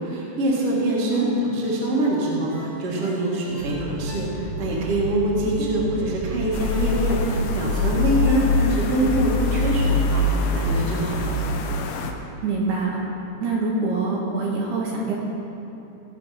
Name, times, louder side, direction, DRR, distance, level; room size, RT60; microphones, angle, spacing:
voice 1, 0.0-11.3, right 1 dB, 45° right, -5 dB, 2.6 m, -24 dB
voice 2, 1.1-1.4 5.6-5.7 8.5-8.6 12.4-13.0 13.4-15.1, right 3 dB, 70° right, -4 dB, 3.2 m, -25 dB
Ringtone, 2.5-4.7 5.1-5.2 6.7-8.9 9.3-9.4, left 2 dB, 50° left, 2.9 m, -46 dB
sound 1, 3.6-11.4, right 3 dB, 90° right, 5.4 m, -31 dB
sound 2, 6.5-12.1, left 5 dB, 85° left, 3.0 m, -24 dB
19.0 x 7.7 x 4.2 m, 2.9 s
omnidirectional pair, 4.9 m